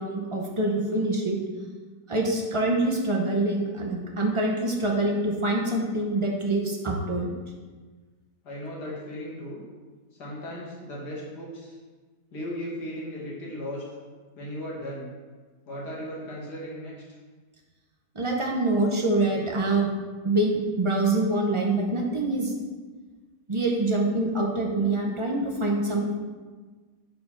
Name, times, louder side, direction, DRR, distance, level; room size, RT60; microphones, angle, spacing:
voice 1, 0.0-1.4 2.1-7.3 18.1-19.9 20.2-22.5 23.5-26.1, right 2 dB, 35° right, -1 dB, 0.4 m, -25 dB
voice 2, 8.4-9.6 10.1-11.8 12.3-13.8 14.4-15.1 15.7-16.9, equal, 80° left, -5 dB, 2.3 m, -36 dB
5.0 x 4.8 x 5.5 m, 1.4 s
omnidirectional pair, 1.8 m